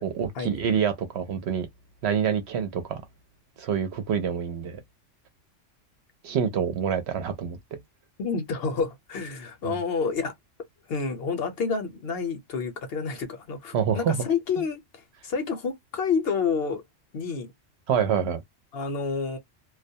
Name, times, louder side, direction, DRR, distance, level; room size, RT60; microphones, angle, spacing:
voice 1, 0.0-1.7 2.0-3.0 3.6-4.8 6.2-7.8 9.6-9.7 13.7-14.2 17.9-18.4, right 7 dB, 65° right, 0.8 m, -26 dB
voice 2, 8.2-10.3 10.9-16.8 17.1-17.5 18.7-19.4, left 5 dB, 60° left, 0.8 m, -29 dB
2.3 x 2.1 x 2.6 m
omnidirectional pair, 1.3 m